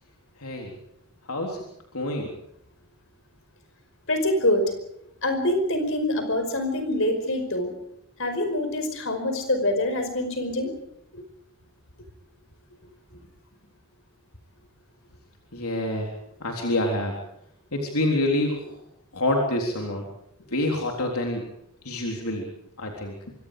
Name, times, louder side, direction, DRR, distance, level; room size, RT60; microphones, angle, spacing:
voice 1, 0.4-0.7 1.3-1.6 1.9-2.3 15.5-16.1 16.4-17.2 17.7-18.7 19.1-20.0 20.5-21.4 21.8-22.5 22.8-23.1, left 1 dB, 80° left, 1 dB, 3.7 m, -27 dB
voice 2, 4.1-4.7 5.2-7.7 8.2-10.7 11.1-11.2, left 1 dB, 60° left, 7 dB, 5.2 m, -25 dB
25.5 x 25.0 x 5.1 m, 0.77 s
head